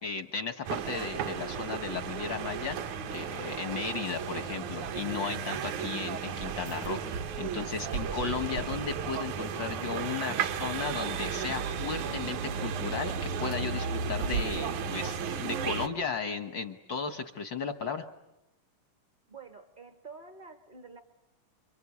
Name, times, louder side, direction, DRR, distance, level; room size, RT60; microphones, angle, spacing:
voice 1, 0.0-18.0, left 5 dB, 70° left, 7 dB, 1.1 m, -35 dB
sound 1, 0.6-15.9, right 6 dB, 70° right, 2.4 m, -34 dB
voice 2, 19.3-21.0, right 4 dB, 40° right, 6 dB, 0.6 m, -48 dB
29.5 x 24.0 x 8.4 m, 0.91 s
omnidirectional pair, 3.7 m